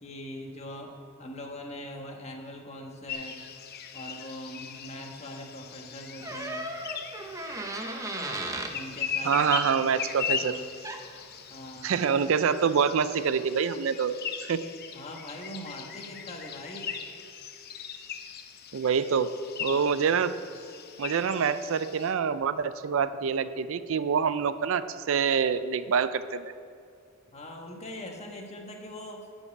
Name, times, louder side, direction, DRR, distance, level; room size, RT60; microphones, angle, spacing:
voice 1, 0.0-0.9 1.2-3.4 3.9-6.6 8.7-9.4 9.8-10.6 11.5-11.9 14.9-16.9 19.7-20.0 27.3-29.3, left 1 dB, 30° left, 1 dB, 1.3 m, -42 dB
sound 1, 3.1-22.1, left 7 dB, 45° left, 0.7 m, -39 dB
Door, 6.2-8.8 10.6-10.7 10.8-11.2, right 2 dB, 15° right, 0.7 m, -35 dB
voice 2, 9.2-10.6 11.8-14.1 14.4-14.6 18.7-19.3 19.6-20.3 21.0-26.5, right 6 dB, 65° right, 13 dB, 0.4 m, -26 dB
11.0 x 5.5 x 8.4 m, 2.4 s
head